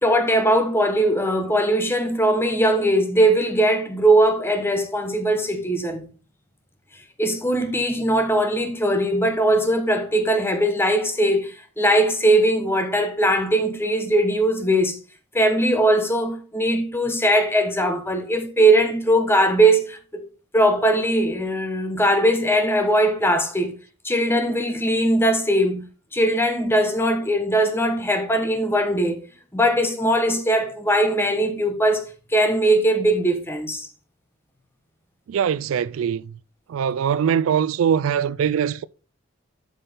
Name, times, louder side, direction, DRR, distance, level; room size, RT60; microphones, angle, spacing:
voice 1, 0.0-6.0 7.2-15.0 15.3-20.0 20.5-23.7 24.0-25.9 26.1-29.2 29.5-32.1 32.3-33.9, right 1 dB, 10° left, 1.1 m, -20 dB
voice 2, 35.3-36.4 36.7-38.9, right 8 dB, 85° right, 0.3 m, -22 dB
8.0 x 5.8 x 3.4 m
head